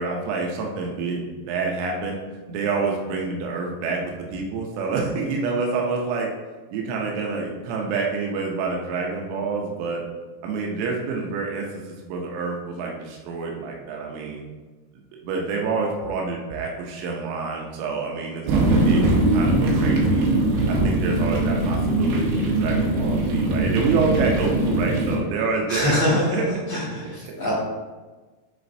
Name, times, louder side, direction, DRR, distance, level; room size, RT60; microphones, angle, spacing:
voice 1, 0.0-2.2 2.5-4.0 4.3-6.3 6.7-10.0 10.4-14.4 15.2-19.0 19.3-20.2 20.7-26.5 27.2-27.3, right 4 dB, 85° right, 0 dB, 3.1 m, -27 dB
sound 1, 18.5-25.2, right 2 dB, 70° right, 2.7 m, -21 dB
voice 2, 25.7-26.2 26.9-27.5, left 1 dB, 55° left, -10 dB, 1.3 m, -23 dB
9.8 x 4.1 x 2.6 m, 1.3 s
omnidirectional pair, 5.2 m